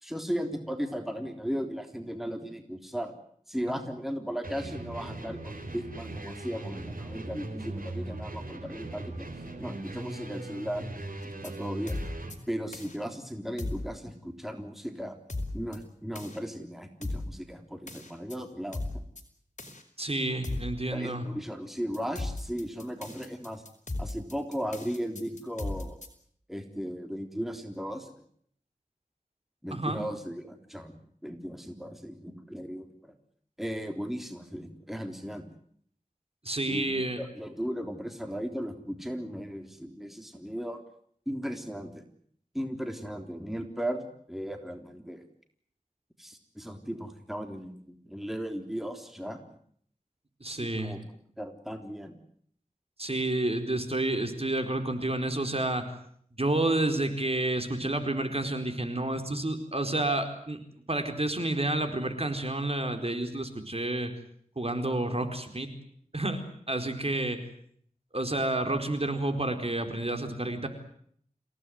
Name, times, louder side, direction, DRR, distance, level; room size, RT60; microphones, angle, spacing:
voice 1, 0.0-3.1 3.5-9.3 9.6-10.9 11.4-12.0 12.5-15.2 15.5-19.0 20.9-23.6 24.0-26.0 26.5-28.1 29.6-31.0 31.2-33.1 33.6-35.5 36.7-40.8 41.3-42.0 42.5-45.2 46.2-49.4 50.5-51.0 51.4-52.2, equal, ahead, 6 dB, 3.6 m, -36 dB
sound 1, 4.4-12.4, right 2 dB, 85° right, 4.0 m, -39 dB
sound 2, 11.2-11.5 11.9-12.4 12.7-13.0 13.6-13.9 15.3-15.8 16.1-16.4 17.0-17.3 17.9-18.4 18.7-19.2 19.6-19.8 20.4-20.7 21.9-26.1, left 2 dB, 55° left, 5.8 m, -36 dB
voice 2, 20.0-21.2 29.7-30.0 36.4-37.2 50.4-51.0 53.0-55.9 56.4-60.6 60.9-64.1 64.6-65.7 66.1-67.4 68.1-70.7, right 2 dB, 45° right, 7 dB, 4.4 m, -30 dB
28.0 x 17.5 x 9.5 m, 0.64 s
wide cardioid pair, 45°, 14 cm